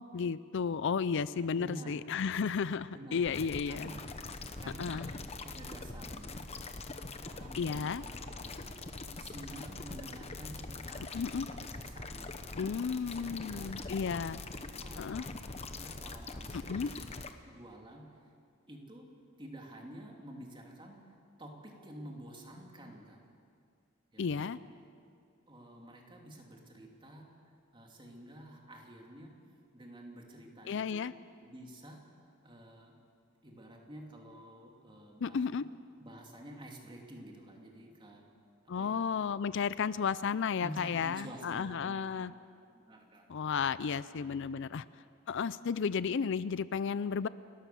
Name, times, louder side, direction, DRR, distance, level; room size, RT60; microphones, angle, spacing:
voice 1, 0.0-3.9 4.8-5.1 7.6-8.0 11.1-11.5 12.5-14.4 15.0-15.2 16.5-16.9 24.2-24.6 30.7-31.1 35.2-35.6 38.7-42.3 43.3-44.8 45.3-47.3, left 6 dB, 65° left, 16 dB, 0.4 m, -33 dB
voice 2, 1.5-1.9 2.9-3.3 3.6-4.1 4.6-5.0 5.4-6.5 7.2-8.8 9.1-11.2 11.5-12.4 13.1-15.4 15.8-18.2 18.7-19.1 19.4-21.0 21.4-23.2 24.1-24.6 25.5-27.3 27.7-29.3 29.7-31.1 31.4-32.0 32.4-33.0 33.4-35.7 36.0-38.2 38.6-39.6 40.6-42.3 42.7-43.3 44.2-44.4 44.7-44.9, right 1 dB, 25° right, 0 dB, 2.9 m, -50 dB
sound 1, 3.2-17.3, left 3 dB, 30° left, 1.0 m, -43 dB
30.0 x 13.5 x 7.1 m, 2.3 s
head